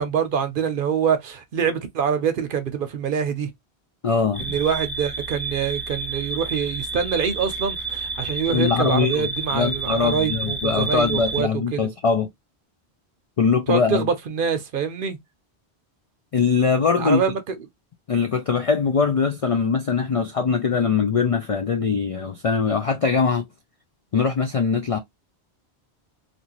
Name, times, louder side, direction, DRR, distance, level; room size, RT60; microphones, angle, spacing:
voice 1, 0.0-3.5 4.4-11.9 13.7-15.2 17.0-17.6, right 7 dB, 60° right, 0.7 m, -25 dB
voice 2, 4.0-4.5 8.5-12.3 13.4-14.1 16.3-17.2 18.1-23.4 24.1-25.0, left 5 dB, 60° left, 0.3 m, -22 dB
sound 1, 4.3-11.4, right 3 dB, 20° right, 0.3 m, -30 dB
2.8 x 2.5 x 2.8 m
omnidirectional pair, 1.1 m